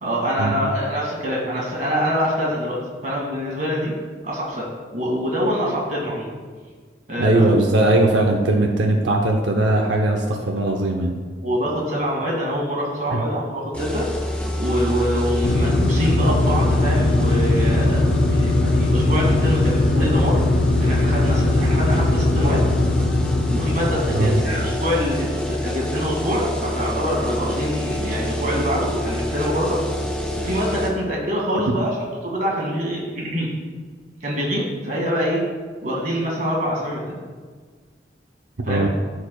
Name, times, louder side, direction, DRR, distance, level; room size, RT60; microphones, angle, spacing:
voice 1, 0.0-3.9 4.2-6.3 7.1-7.5 11.4-20.4 20.8-22.6 23.5-29.8 30.4-33.5 34.2-35.4 35.8-37.2 38.7-38.9, equal, 45° right, -3 dB, 1.9 m, -25 dB
voice 2, 7.2-11.2 13.1-13.2 24.1-24.4 31.7-31.8 38.7-38.9, right 2 dB, 90° right, 1 dB, 0.7 m, -19 dB
sound 1, 13.7-30.9, left 1 dB, 10° left, 0.9 m, -24 dB
sound 2, 15.4-25.2, left 2 dB, 75° left, 0.5 m, -21 dB
14.0 x 4.8 x 2.2 m, 1.5 s
head